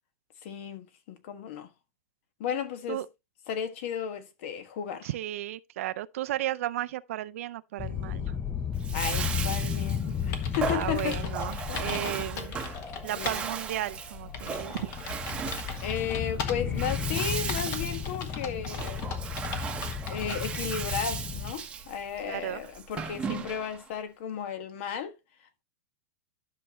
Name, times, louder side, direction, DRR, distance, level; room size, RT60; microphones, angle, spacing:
voice 1, 0.4-1.7 2.4-3.0 3.5-5.1 8.9-11.2 11.7-12.1 12.5-12.6 13.2-13.5 15.8-19.0 20.1-25.1, left 8 dB, 55° left, 1.5 m, -34 dB
voice 2, 5.0-8.2 10.6-12.5 13.0-14.9 22.3-22.6, right 14 dB, 65° right, 0.5 m, -34 dB
sound 1, 7.8-21.5, left 8 dB, 15° left, 0.6 m, -34 dB
Bathtub (filling or washing), 8.7-23.9, right 6 dB, 15° right, 1.0 m, -37 dB
sound 2, 9.9-10.0 10.3-13.5 13.8-13.9 14.3-16.8 17.5-20.4, left 5 dB, 35° left, 1.5 m, -39 dB
11.5 x 6.1 x 3.0 m
supercardioid pair, 155°, 8 cm